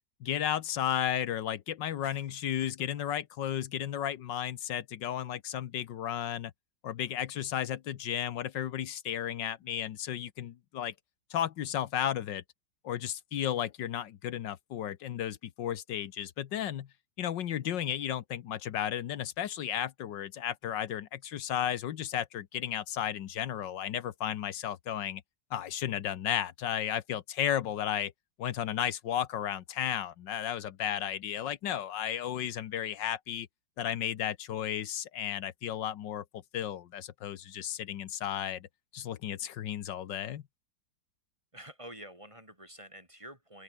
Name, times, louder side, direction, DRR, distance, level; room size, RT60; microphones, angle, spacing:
voice 1, 0.2-6.5 6.8-10.9 11.3-12.4 12.8-16.9 17.2-25.2 25.5-28.1 28.4-33.5 33.8-38.7 38.9-40.4, left 10 dB, 75° left, 1.6 m, -34 dB
voice 2, 2.0-2.5 41.5-43.6, right 1 dB, 15° right, 4.2 m, -49 dB
open air
omnidirectional pair, 2.0 m